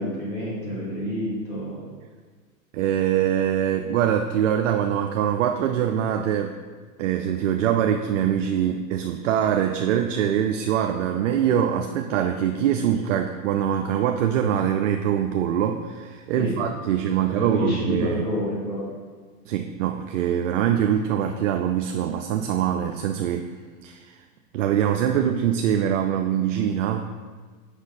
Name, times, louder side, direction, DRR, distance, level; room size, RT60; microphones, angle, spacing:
voice 1, 0.0-1.8 16.4-16.6 16.9-18.8, left 1 dB, 35° left, -7 dB, 2.1 m, -29 dB
voice 2, 2.7-6.6 7.0-18.3 19.5-23.5 23.8-24.2 24.5-27.1, right 9 dB, 55° right, 5 dB, 0.5 m, -23 dB
6.3 x 5.6 x 4.0 m, 1.5 s
hypercardioid pair, 135°, 46 cm